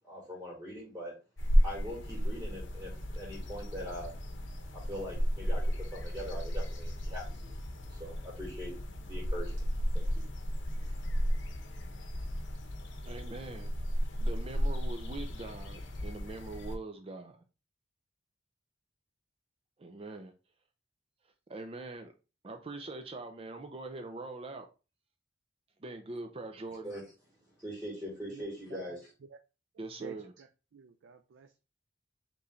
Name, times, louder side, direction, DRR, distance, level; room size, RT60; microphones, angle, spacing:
voice 1, 0.1-1.1 1.6-4.1 4.7-7.5 7.9-9.6 9.9-10.2 26.8-27.0 27.6-29.1, equal, 10° right, 2.2 m, -42 dB
sound 1, 1.4-16.8, equal, 85° left, 0.8 m, -33 dB
voice 2, 13.0-13.7 14.2-17.4 19.8-20.3 21.5-22.1 22.4-24.7 25.8-26.9 29.8-30.3, right 2 dB, 30° right, 0.5 m, -43 dB
voice 3, 30.0-30.5 30.7-31.6, right 6 dB, 85° right, 0.4 m, -50 dB
5.5 x 3.1 x 2.6 m
head